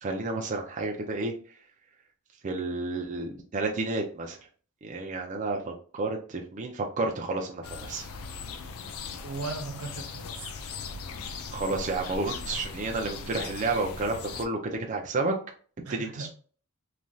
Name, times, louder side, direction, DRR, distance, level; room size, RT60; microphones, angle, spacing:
voice 1, 0.0-1.3 2.4-4.4 4.8-8.1 11.5-14.6 14.9-15.3 15.9-16.3, right 3 dB, 35° right, 0.4 m, -31 dB
sound 1, 7.6-14.5, left 5 dB, 70° left, 0.4 m, -39 dB
voice 2, 9.2-10.8 15.8-16.3, right 3 dB, 75° right, 0.6 m, -38 dB
3.2 x 2.6 x 2.3 m
head